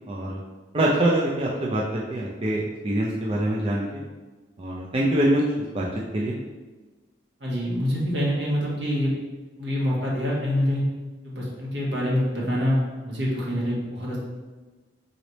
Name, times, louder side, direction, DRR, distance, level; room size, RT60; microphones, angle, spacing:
voice 1, 0.1-0.4 0.7-4.0 4.6-6.4, right 1 dB, 30° right, -4 dB, 0.4 m, -24 dB
voice 2, 7.4-9.1 9.5-10.8 11.2-14.2, equal, 70° right, -4 dB, 1.4 m, -26 dB
4.0 x 3.2 x 4.0 m, 1.3 s
head